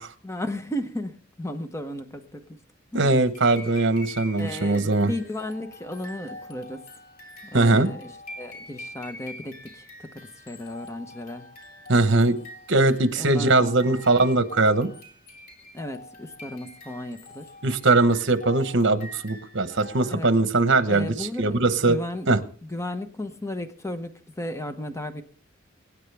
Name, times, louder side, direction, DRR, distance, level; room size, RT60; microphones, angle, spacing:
voice 1, 0.2-2.6 2.9-3.1 4.4-6.8 7.5-11.4 12.0-12.4 13.2-14.3 15.7-17.5 18.2-18.3 20.1-20.3 20.9-22.3 22.6-25.2, left 1 dB, 15° left, 8 dB, 1.0 m, -35 dB
voice 2, 2.9-5.1 7.5-7.9 11.9-12.4 12.7-14.9 17.6-22.0 22.3-22.4, right 2 dB, 60° right, 11 dB, 1.1 m, -21 dB
sound 1, 3.3-20.4, left 1 dB, 45° left, 3.2 m, -45 dB
24.0 x 9.8 x 3.5 m, 0.43 s
head